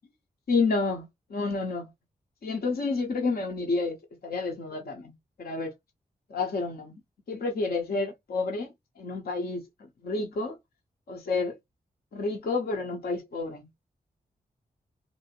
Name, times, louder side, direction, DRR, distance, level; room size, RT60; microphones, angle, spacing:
voice 1, 0.5-1.9 2.4-5.7 6.3-7.0 7.3-10.6 11.1-11.6 12.1-13.7, left 3 dB, 70° left, 0.8 m, -30 dB
2.6 x 2.6 x 2.8 m
cardioid pair, 40°, 16 cm